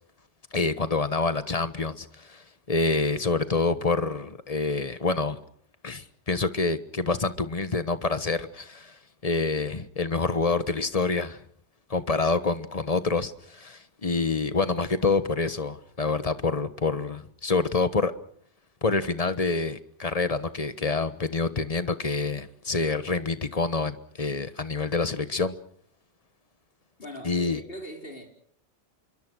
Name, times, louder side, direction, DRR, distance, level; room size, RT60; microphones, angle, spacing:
voice 1, 0.5-5.4 5.8-9.0 9.2-11.4 11.9-18.1 18.8-25.6 27.2-27.6, left 3 dB, 30° left, 1.3 m, -27 dB
voice 2, 27.0-28.3, equal, 55° left, 4.7 m, -40 dB
27.0 x 23.0 x 6.3 m
omnidirectional pair, 1.2 m